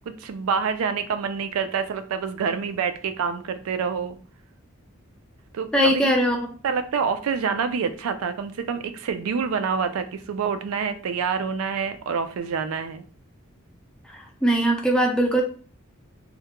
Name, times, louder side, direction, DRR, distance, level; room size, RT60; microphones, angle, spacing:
voice 1, 0.1-4.2 5.5-6.0 6.6-13.0, right 6 dB, 85° right, 10 dB, 0.4 m, -27 dB
voice 2, 5.7-6.4 14.4-15.4, right 1 dB, 5° left, 0 dB, 0.4 m, -20 dB
2.4 x 2.1 x 2.8 m, 0.40 s
head